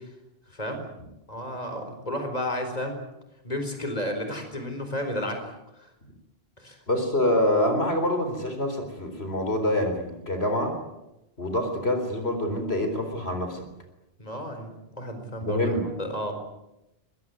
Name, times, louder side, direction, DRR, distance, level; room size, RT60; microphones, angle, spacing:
voice 1, 0.5-0.8 1.3-3.0 3.4-5.9 6.6-6.8 14.2-16.3, left 1 dB, 40° left, 6 dB, 4.6 m, -32 dB
voice 2, 6.9-10.8 11.4-13.6 15.4-15.8, left 1 dB, 80° left, 6 dB, 4.4 m, -26 dB
23.5 x 21.0 x 9.5 m, 0.91 s
omnidirectional pair, 1.0 m